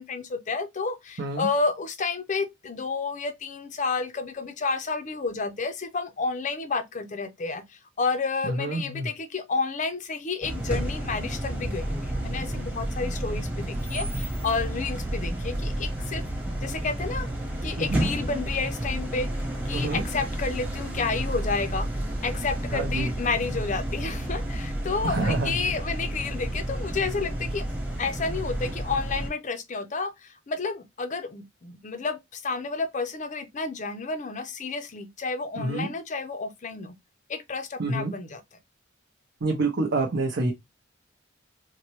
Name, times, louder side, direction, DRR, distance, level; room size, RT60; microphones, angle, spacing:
voice 1, 0.0-16.2 16.6-17.3 17.6-19.3 19.7-21.9 22.2-27.7 28.0-36.9 37.3-38.4, left 4 dB, 35° left, 0.5 m, -30 dB
voice 2, 1.2-1.5 8.4-9.1 17.8-18.1 19.7-20.0 22.7-23.1 25.0-25.6 35.6-35.9 37.8-38.1 39.4-40.5, right 2 dB, 60° right, 0.6 m, -27 dB
sound 1, 10.4-29.3, right 1 dB, 5° right, 0.9 m, -31 dB
4.1 x 2.1 x 2.9 m
head